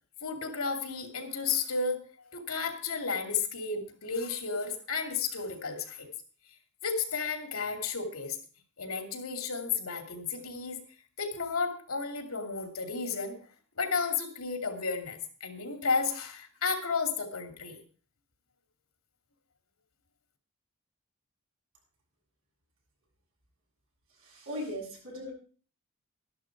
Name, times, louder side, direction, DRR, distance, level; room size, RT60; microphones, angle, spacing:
voice 1, 0.2-2.0 2.3-6.1 6.8-8.4 8.8-10.8 11.2-13.4 13.8-17.8, left 5 dB, 90° left, 5 dB, 2.5 m, -32 dB
voice 2, 24.2-25.3, equal, 75° right, -2 dB, 7.1 m, -38 dB
12.5 x 11.5 x 4.7 m, 0.41 s
head